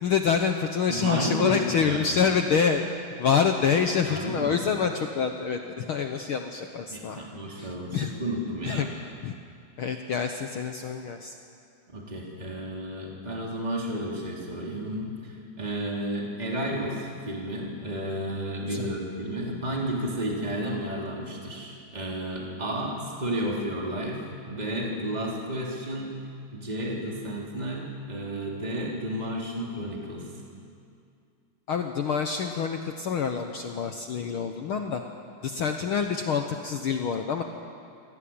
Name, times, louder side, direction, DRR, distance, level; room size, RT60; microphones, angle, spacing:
voice 1, 0.0-2.8 3.2-7.2 7.6-8.1 8.6-8.9 9.2-9.3 9.8-11.4 18.7-18.9 31.7-35.0 35.4-37.4, left 6 dB, 65° left, 5 dB, 1.4 m, -26 dB
voice 2, 0.9-1.6 1.8-2.3 4.1-4.5 6.9-9.0 11.9-26.1 26.5-30.3, right 1 dB, 15° right, -2 dB, 3.3 m, -32 dB
24.5 x 17.5 x 8.8 m, 2.4 s
omnidirectional pair, 3.5 m